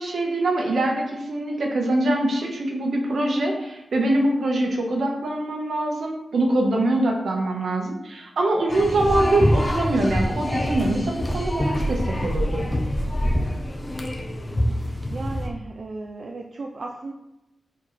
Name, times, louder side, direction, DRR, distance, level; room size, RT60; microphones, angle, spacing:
voice 1, 0.0-12.7, right 1 dB, 70° right, 1 dB, 1.5 m, -23 dB
sound 1, 8.7-15.5, equal, 20° left, 0.9 m, -25 dB
voice 2, 8.8-9.1 14.7-17.1, right 3 dB, 45° right, 1 dB, 0.6 m, -36 dB
6.1 x 5.0 x 4.2 m, 0.95 s
wide cardioid pair, 170°, 0 cm